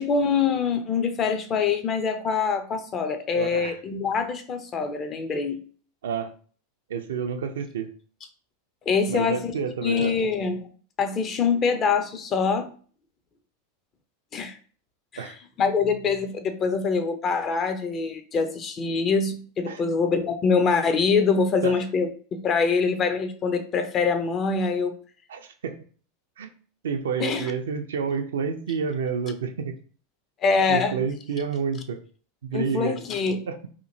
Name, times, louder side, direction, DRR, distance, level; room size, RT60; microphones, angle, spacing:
voice 1, 0.0-5.6 8.9-9.5 9.8-10.7 11.0-12.7 14.3-14.6 15.1-15.2 15.6-24.9 27.2-27.5 30.4-31.0 32.5-33.5, left 5 dB, 35° left, 7 dB, 0.5 m, -24 dB
voice 2, 3.3-3.8 6.0-6.3 6.9-7.9 9.1-10.2 15.2-15.4 19.7-19.8 21.6-21.7 25.3-25.8 26.4-26.5 26.8-29.7 30.7-32.0 32.4-33.0 33.5-33.6, right 6 dB, 75° right, 7 dB, 0.4 m, -29 dB
2.8 x 2.5 x 2.7 m, 0.43 s
hypercardioid pair, 90°, 0 cm